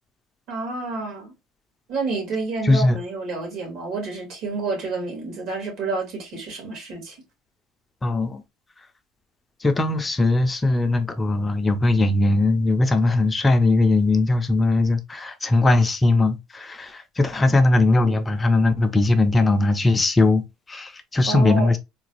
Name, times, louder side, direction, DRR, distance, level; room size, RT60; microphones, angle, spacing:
voice 1, 0.5-1.3 1.9-7.2 17.5-17.6 21.2-21.7, right 3 dB, 60° right, 1.8 m, -29 dB
voice 2, 2.6-3.0 8.0-8.4 9.6-20.4 20.7-21.8, left 2 dB, 15° left, 0.4 m, -19 dB
3.8 x 2.2 x 2.9 m
cardioid pair, 150°, 0 cm